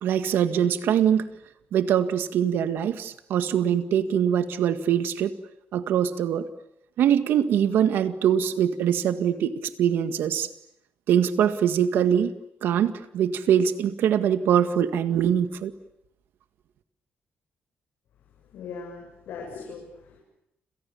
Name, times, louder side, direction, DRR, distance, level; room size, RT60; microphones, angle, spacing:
voice 1, 0.0-1.2 1.7-5.3 5.7-6.5 7.0-10.5 11.1-12.3 12.6-15.7, right 9 dB, 80° right, 10 dB, 1.9 m, -23 dB
voice 2, 18.5-20.2, left 5 dB, 80° left, -1 dB, 7.5 m, -39 dB
30.0 x 28.0 x 7.2 m, 0.78 s
cardioid pair, 165°, 4 cm